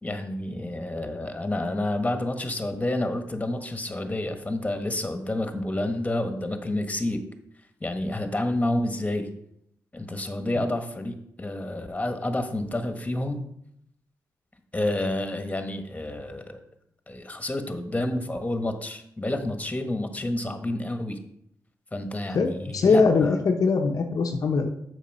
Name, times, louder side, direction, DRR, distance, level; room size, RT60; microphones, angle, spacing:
voice 1, 0.0-7.2 7.8-9.3 9.9-13.4 14.7-16.6 17.1-21.2 21.9-23.3, left 1 dB, 20° left, 7 dB, 1.5 m, -29 dB
voice 2, 22.3-24.7, left 4 dB, 60° left, 3 dB, 0.8 m, -22 dB
7.2 x 5.5 x 5.5 m, 0.73 s
supercardioid pair, 50°, 7 cm